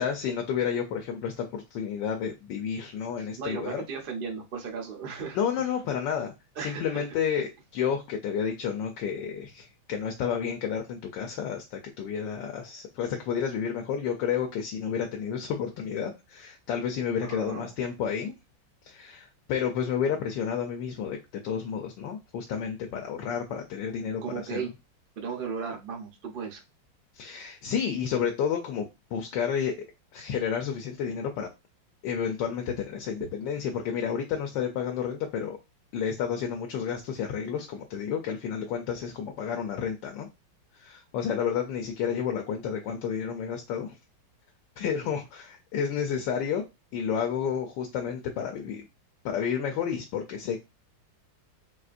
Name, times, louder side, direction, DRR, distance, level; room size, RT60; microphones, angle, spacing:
voice 1, 0.0-3.8 5.3-18.3 18.8-21.2 21.4-24.2 24.5-24.7 27.1-29.9 30.1-31.5 32.0-35.6 35.9-40.3 40.7-43.9 44.8-46.6 46.9-48.9 49.2-50.6, left 7 dB, 75° left, 3 dB, 1.2 m, -31 dB
voice 2, 3.2-5.4 6.6-7.0 17.2-17.7 24.2-24.7 25.2-26.6 33.2-33.3, right 6 dB, 70° right, 1 dB, 0.5 m, -36 dB
4.2 x 2.5 x 2.5 m, 0.23 s
omnidirectional pair, 2.2 m